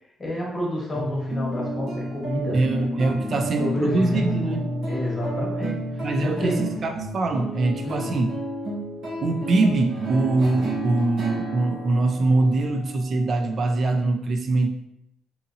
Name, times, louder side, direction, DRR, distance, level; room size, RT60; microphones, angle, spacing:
voice 1, 0.2-2.6 3.1-4.5 4.9-6.8 7.8-8.1, left 1 dB, 30° left, -4 dB, 1.1 m, -30 dB
sound 1, 0.9-13.7, right 1 dB, 75° right, 0.9 m, -31 dB
voice 2, 2.5-4.6 6.0-8.3 9.2-14.7, right 2 dB, 50° right, 5 dB, 0.3 m, -23 dB
2.7 x 2.6 x 2.5 m, 0.79 s
cardioid pair, 85°, 0 cm